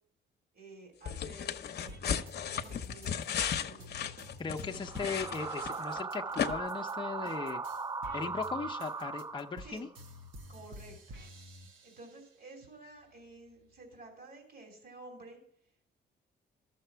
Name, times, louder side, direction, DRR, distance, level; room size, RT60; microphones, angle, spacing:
voice 1, 0.5-3.9 4.6-5.1 9.6-9.9 10.5-15.4, right 2 dB, 50° right, 2 dB, 3.1 m, -52 dB
sound 1, 1.1-6.0 6.4-6.5, left 8 dB, 55° left, 0.8 m, -35 dB
sound 2, 1.9-7.0 7.2-12.4 12.9-13.9, equal, 80° right, 1.3 m, -51 dB
voice 2, 4.4-7.6 8.1-9.9, left 5 dB, 25° left, 3 dB, 0.7 m, -38 dB
sound 3, 4.8-9.9, right 4 dB, 20° right, 0.4 m, -38 dB
13.0 x 6.8 x 4.5 m, 0.67 s
cardioid pair, 90°, 20 cm